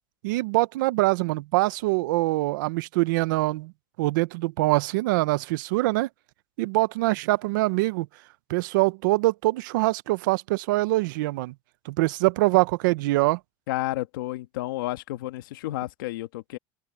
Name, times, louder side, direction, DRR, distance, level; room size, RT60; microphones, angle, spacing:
voice 1, 0.2-3.7 4.0-6.1 6.6-8.1 8.5-11.5 11.9-13.4, right 20 dB, 70° right, 0.8 m, -24 dB
voice 2, 13.7-16.6, left 17 dB, 90° left, 1.8 m, -31 dB
open air
supercardioid pair, 170°, 11 cm